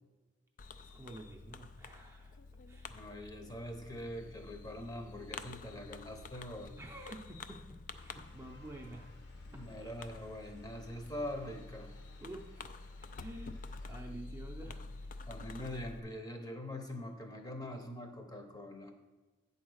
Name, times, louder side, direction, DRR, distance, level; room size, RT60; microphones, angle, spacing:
Fireworks, 0.6-16.0, left 3 dB, 40° left, 0.3 m, -49 dB
voice 1, 0.8-2.4 2.7-3.0 6.8-7.6 8.0-9.2 9.5-9.6 12.2-12.7 13.2-13.5 13.8-15.3, right 1 dB, 15° right, 0 dB, 0.6 m, -49 dB
voice 2, 2.9-6.8 9.5-11.9 15.3-18.9, left 1 dB, 20° left, 4 dB, 0.8 m, -43 dB
sound 1, 8.0-14.1, left 2 dB, 55° left, 1.0 m, -63 dB
8.8 x 4.0 x 6.4 m, 1.2 s
head